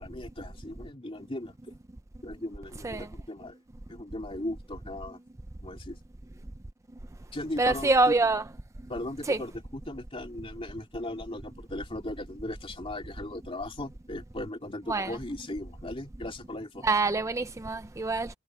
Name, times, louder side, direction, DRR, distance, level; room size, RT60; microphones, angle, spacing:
voice 1, 0.0-1.5 2.2-3.6 3.9-5.2 5.6-6.0 7.3-8.1 8.9-16.8, left 1 dB, 25° left, 2.8 m, -38 dB
voice 2, 7.6-8.4 9.3-9.4 14.9-15.2 16.8-18.3, right 3 dB, 15° right, 0.4 m, -25 dB
head